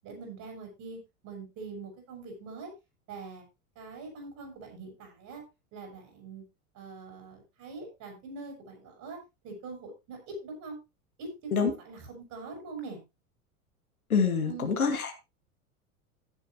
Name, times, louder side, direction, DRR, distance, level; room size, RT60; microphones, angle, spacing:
voice 1, 0.0-2.7 3.1-3.4 3.8-5.4 5.7-6.4 6.7-9.2 9.4-10.8 11.2-11.3 11.6-13.0 14.5-14.8, right 3 dB, 40° right, 3 dB, 7.3 m, -43 dB
voice 2, 14.1-15.1, left 6 dB, 75° left, 5 dB, 2.6 m, -26 dB
16.0 x 7.9 x 3.1 m, 0.25 s
figure-of-eight pair, 85°, 43 cm